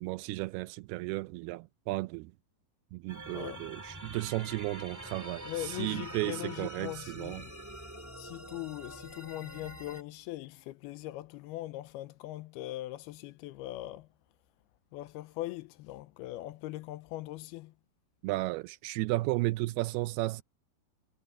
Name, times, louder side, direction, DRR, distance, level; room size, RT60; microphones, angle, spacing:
voice 1, 0.0-2.3 2.9-7.5 18.2-20.4, right 20 dB, 85° right, 2.4 m, -34 dB
sound 1, 3.1-10.0, right 1 dB, 10° right, 0.8 m, -45 dB
voice 2, 5.4-7.5 8.2-14.1 14.9-17.7, left 16 dB, 85° left, 2.5 m, -41 dB
omnidirectional pair, 4.7 m